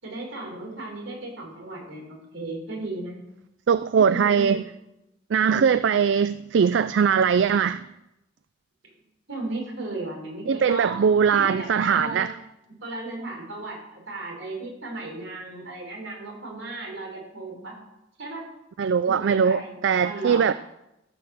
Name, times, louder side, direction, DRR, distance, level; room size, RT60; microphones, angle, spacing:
voice 1, 0.0-3.2 3.9-4.7 5.4-5.7 9.3-11.0 11.3-12.3 12.8-17.8 18.2-18.4 19.0-20.5, right 2 dB, 85° right, -1 dB, 5.1 m, -35 dB
voice 2, 3.7-4.6 5.3-7.8 10.5-12.3 18.8-20.5, right 6 dB, 65° right, 14 dB, 0.4 m, -21 dB
15.0 x 6.4 x 7.5 m, 0.88 s
head